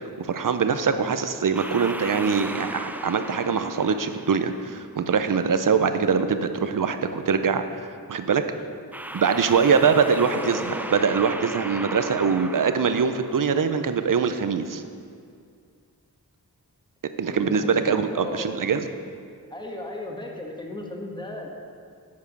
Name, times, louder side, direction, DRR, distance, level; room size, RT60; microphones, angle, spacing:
voice 1, 0.2-8.5 9.1-14.8 17.2-18.9, right 6 dB, 55° right, 9 dB, 0.6 m, -23 dB
sound 1, 1.5-4.9 8.9-13.7, right 1 dB, 5° right, 0.4 m, -36 dB
voice 2, 10.2-10.9 17.3-18.7 19.5-21.5, left 1 dB, 10° left, 0 dB, 1.3 m, -36 dB
8.4 x 4.8 x 6.0 m, 2.3 s
cardioid pair, 40°, 38 cm